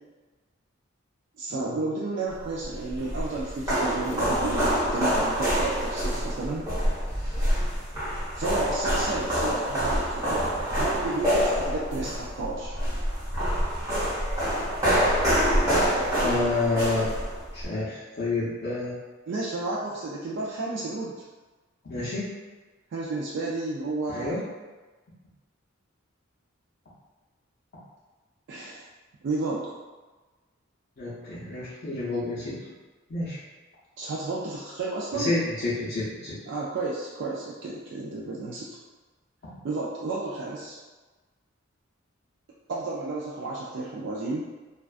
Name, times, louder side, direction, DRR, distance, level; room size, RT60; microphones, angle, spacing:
voice 1, 1.4-6.7 8.4-12.7 19.3-21.2 22.9-24.4 28.5-28.8 29.2-29.7 34.0-35.3 36.5-38.7 39.6-40.8 42.7-44.5, right 3 dB, 60° right, -5 dB, 0.3 m, -32 dB
sound 1, 2.6-17.6, equal, 15° right, 1.1 m, -26 dB
voice 2, 16.2-17.1 17.5-19.0 21.8-22.3 24.1-24.4 31.0-32.6 33.1-33.4 35.1-36.4, left 2 dB, 50° left, -11 dB, 0.5 m, -29 dB
2.4 x 2.2 x 2.3 m, 1.3 s
head